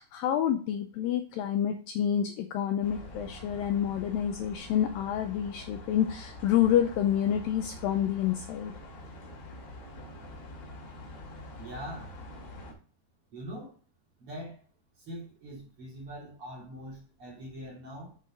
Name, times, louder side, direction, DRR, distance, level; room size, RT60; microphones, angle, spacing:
voice 1, 0.0-8.7, left 10 dB, 85° left, 5 dB, 2.1 m, -28 dB
sound 1, 2.8-12.7, left 1 dB, 45° left, 3.1 m, -45 dB
voice 2, 11.6-12.2 13.3-13.7 14.2-14.6 15.0-18.2, equal, 35° right, -4 dB, 3.4 m, -42 dB
8.0 x 5.5 x 3.7 m, 0.39 s
omnidirectional pair, 4.7 m